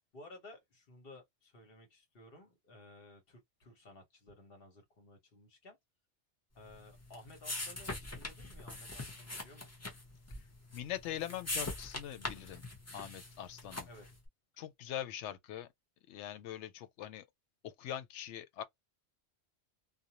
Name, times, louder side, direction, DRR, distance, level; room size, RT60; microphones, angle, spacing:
voice 1, 0.0-5.8 6.5-9.9 13.9-14.1, left 2 dB, 55° left, 1.2 m, -56 dB
sound 1, 6.7-14.1, left 2 dB, 15° left, 0.6 m, -43 dB
voice 2, 10.7-12.6 12.9-13.9 14.6-15.7 16.1-17.3 17.6-18.6, left 11 dB, 85° left, 0.9 m, -42 dB
2.5 x 2.1 x 2.9 m
omnidirectional pair, 1.2 m